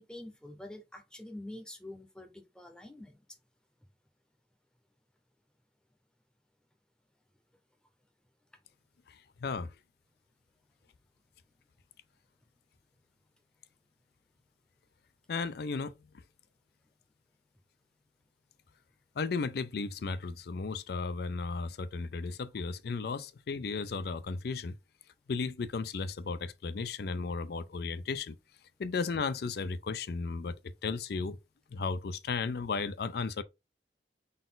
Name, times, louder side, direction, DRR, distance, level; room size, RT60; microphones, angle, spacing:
voice 1, 0.0-3.2, left 1 dB, 5° left, 0.7 m, -46 dB
voice 2, 9.1-9.7 15.3-15.9 19.2-24.7 25.3-28.4 28.8-30.5 30.8-31.4 31.7-33.4, left 4 dB, 60° left, 0.4 m, -35 dB
3.9 x 2.5 x 3.8 m
head